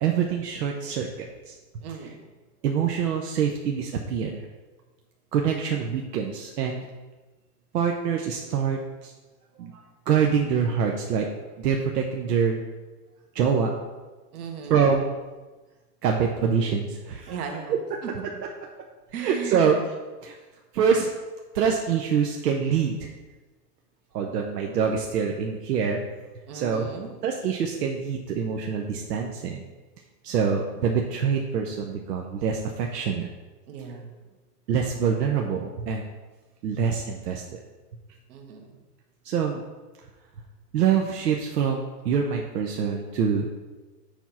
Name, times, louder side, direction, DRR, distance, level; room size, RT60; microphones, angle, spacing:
voice 1, 0.0-1.5 2.6-4.4 5.3-6.9 7.7-9.1 9.6-9.8 10.1-11.3 11.6-12.6 13.3-13.7 14.7-15.1 16.0-17.4 17.7-17.8 19.2-19.8 20.2-20.4 20.7-21.1 21.5-23.1 24.1-26.0 26.5-26.9 27.2-29.6 30.2-33.3 34.7-36.0 36.6-37.6 39.2-39.6 40.7-43.5, right 7 dB, 85° right, 1 dB, 1.0 m, -25 dB
voice 2, 1.8-2.2 14.3-14.8 17.3-18.1 19.1-19.8 26.5-27.1 33.7-34.1 38.3-38.8, right 6 dB, 65° right, 2 dB, 1.7 m, -36 dB
7.1 x 4.5 x 5.5 m, 1.2 s
supercardioid pair, 145°, 47 cm